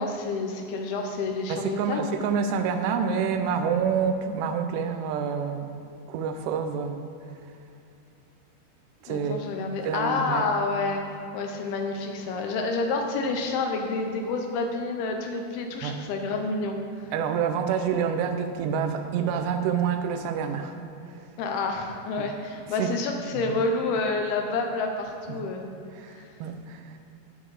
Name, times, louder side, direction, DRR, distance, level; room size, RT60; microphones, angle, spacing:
voice 1, 0.0-2.1 9.1-11.0 11.3-16.8 21.4-25.7 26.1-26.3, left 3 dB, 75° left, 3 dB, 2.5 m, -29 dB
voice 2, 1.5-5.8 6.1-7.1 9.0-9.5 9.8-10.5 15.8-16.0 17.1-20.8 22.2-22.3 22.8-22.9 25.3-25.4 26.0-27.0, right 6 dB, 80° right, 7 dB, 2.7 m, -27 dB
9.0 x 9.0 x 4.8 m, 2.7 s
omnidirectional pair, 5.0 m